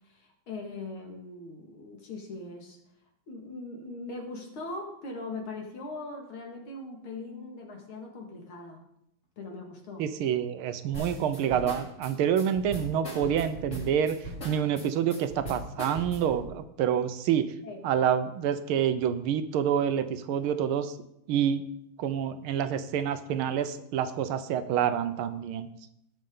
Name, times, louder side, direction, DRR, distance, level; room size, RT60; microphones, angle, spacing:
voice 1, 0.0-2.8 3.3-8.8 9.4-10.1 17.6-17.8, left 2 dB, 75° left, 1 dB, 2.8 m, -40 dB
voice 2, 10.0-14.2 14.4-17.5 17.8-20.9 21.3-21.6 22.0-25.7, right 9 dB, 80° right, 11 dB, 1.6 m, -27 dB
sound 1, 10.9-16.4, equal, 35° left, 3.5 m, -39 dB
18.5 x 6.5 x 3.7 m, 0.77 s
omnidirectional pair, 2.4 m